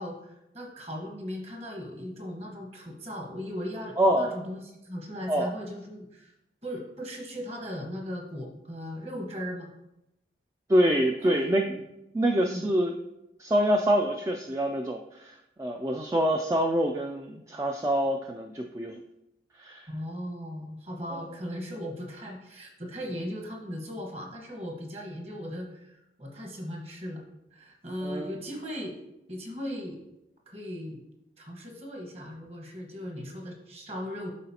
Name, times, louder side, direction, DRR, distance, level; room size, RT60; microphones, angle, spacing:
voice 1, 0.0-6.3 6.6-9.7 11.1-11.4 12.5-12.7 19.9-27.2 27.5-29.0 29.3-30.0 30.5-31.0 31.4-34.3, equal, 35° right, 0 dB, 1.3 m, -38 dB
voice 2, 4.0-4.3 5.3-5.5 10.7-11.8 12.1-13.0 13.4-19.0 19.6-19.9 28.0-28.3, equal, 15° right, 2 dB, 0.3 m, -26 dB
11.5 x 4.0 x 2.8 m, 0.88 s
head